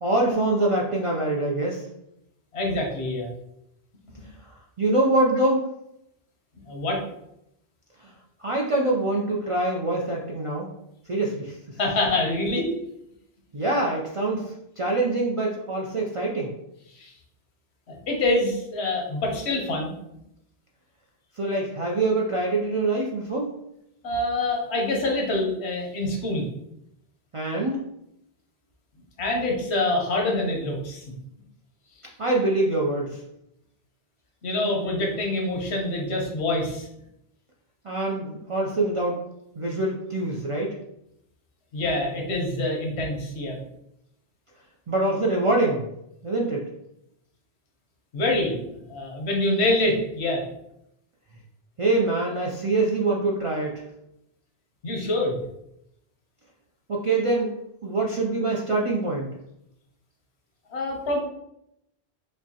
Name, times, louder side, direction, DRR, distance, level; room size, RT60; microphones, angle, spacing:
voice 1, 0.0-1.9 4.8-5.7 8.0-8.1 8.4-10.7 11.1-11.6 13.5-16.5 21.4-23.6 27.3-27.8 32.2-33.2 37.8-39.2 39.6-40.7 44.9-45.9 46.2-46.6 51.8-53.8 56.9-57.5 57.8-59.3, right 2 dB, 50° right, -3 dB, 0.4 m, -24 dB
voice 2, 2.5-3.3 6.7-7.0 11.8-12.7 16.9-17.1 17.9-19.9 24.0-26.4 29.2-31.0 34.4-36.9 41.7-43.6 48.1-50.4 54.8-55.4 60.7-61.2, left 2 dB, 80° left, 0 dB, 1.1 m, -25 dB
4.9 x 2.2 x 2.8 m, 0.82 s
omnidirectional pair, 1.1 m